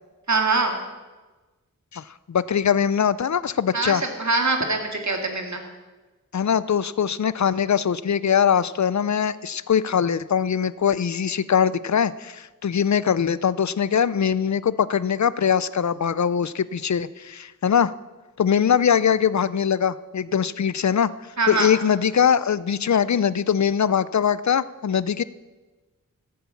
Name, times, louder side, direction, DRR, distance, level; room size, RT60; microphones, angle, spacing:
voice 1, 0.3-0.8 3.7-5.6 21.4-21.7, right 3 dB, 55° right, 3 dB, 2.3 m, -23 dB
voice 2, 1.9-4.0 6.3-17.9 18.4-21.1 21.5-25.2, left 8 dB, 55° left, 18 dB, 0.5 m, -22 dB
14.5 x 8.5 x 7.1 m, 1.2 s
wide cardioid pair, 70°, 34 cm